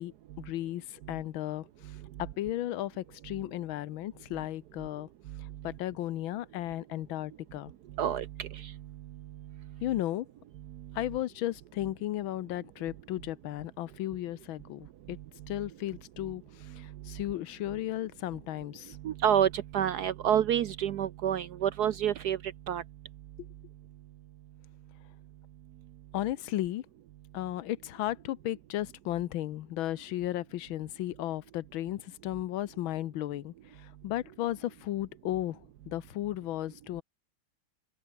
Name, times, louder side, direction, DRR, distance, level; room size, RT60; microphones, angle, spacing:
voice 1, 0.0-5.1 5.4-7.7 9.8-10.3 10.9-15.2 15.5-19.0 26.1-26.8 27.3-35.6 35.9-37.0, left 14 dB, 75° left, 1.5 m, -35 dB
voice 2, 8.0-8.7 19.0-22.4 22.7-22.8, right 9 dB, 65° right, 1.0 m, -28 dB
open air
omnidirectional pair, 2.2 m